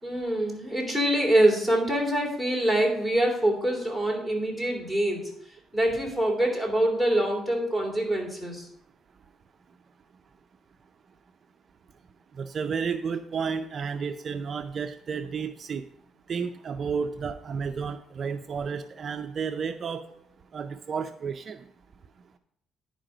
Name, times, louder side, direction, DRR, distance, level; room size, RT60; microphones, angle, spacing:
voice 1, 0.0-5.3 5.7-8.7, right 1 dB, 10° left, 1 dB, 3.0 m, -25 dB
voice 2, 12.4-15.8 16.3-20.0 20.5-21.6, right 6 dB, 45° right, 8 dB, 0.5 m, -32 dB
10.5 x 4.9 x 5.0 m, 0.72 s
cardioid pair, 100°, 0 cm